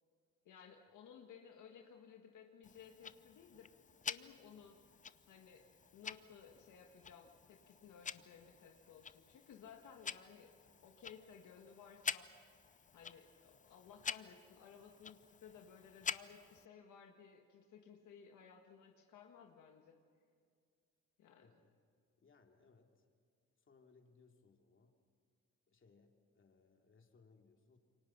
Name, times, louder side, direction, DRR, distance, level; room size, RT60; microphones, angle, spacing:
voice 1, 0.5-3.7 4.0-4.8 5.3-5.7 5.9-10.5 10.8-12.3 12.9-20.0 21.2-21.5, left 7 dB, 80° left, 3 dB, 1.7 m, -58 dB
Tick-tock, 2.6-16.6, left 6 dB, 25° left, 0.6 m, -49 dB
voice 2, 21.4-21.8 22.2-23.0 23.6-25.0 25.7-27.8, left 4 dB, 40° left, 3 dB, 2.8 m, -68 dB
27.5 x 24.0 x 5.9 m, 2.2 s
cardioid pair, 90°, 30 cm